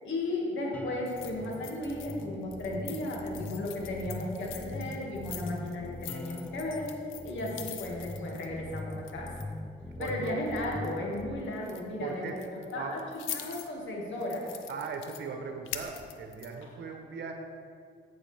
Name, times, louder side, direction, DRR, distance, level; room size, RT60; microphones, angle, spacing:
voice 1, 0.0-6.9 7.2-9.3 10.0-13.0 13.3-14.5, left 1 dB, 70° left, -2 dB, 2.3 m, -35 dB
sound 1, 0.7-11.4, left 2 dB, 10° left, 0.3 m, -42 dB
sound 2, 1.1-2.3 2.5-9.6 10.0-11.2 11.5-11.8 12.3-13.7 14.2-15.2 15.7-16.6, left 10 dB, 90° left, 0.7 m, -44 dB
voice 2, 10.0-10.3 12.0-13.0 14.7-17.3, right 5 dB, 60° right, 4 dB, 1.1 m, -39 dB
15.0 x 6.1 x 3.5 m, 2.2 s
cardioid pair, 90°, 20 cm